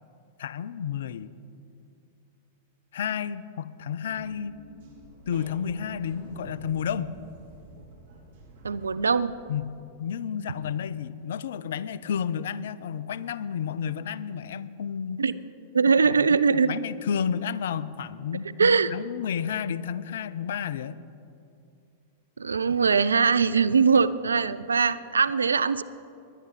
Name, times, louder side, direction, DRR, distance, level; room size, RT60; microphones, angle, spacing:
voice 1, 0.4-1.3 2.9-4.6 5.3-7.2 9.5-9.7 10.0-15.2 16.0-21.0, left 8 dB, 70° left, 17 dB, 0.5 m, -31 dB
sound 1, 4.0-9.6, right 2 dB, 60° right, 2.8 m, -50 dB
voice 2, 8.6-9.3 15.2-15.3 15.7-16.8 18.6-18.9 22.4-25.8, right 5 dB, 85° right, 16 dB, 0.4 m, -21 dB
19.5 x 11.0 x 4.1 m, 2.5 s
hypercardioid pair, 100°, 0 cm